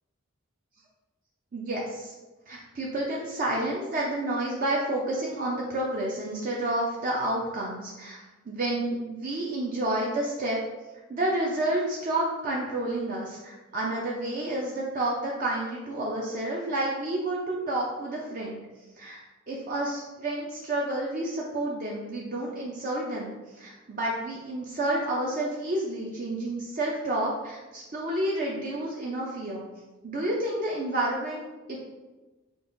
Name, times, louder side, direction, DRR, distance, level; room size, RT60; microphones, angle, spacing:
voice 1, 1.5-2.1 2.5-8.2 8.5-10.6 11.1-18.6 19.0-19.2 19.5-29.7 30.0-31.4 31.7-31.8, right 1 dB, 40° right, -3 dB, 0.5 m, -30 dB
5.3 x 2.4 x 2.5 m, 1.1 s
head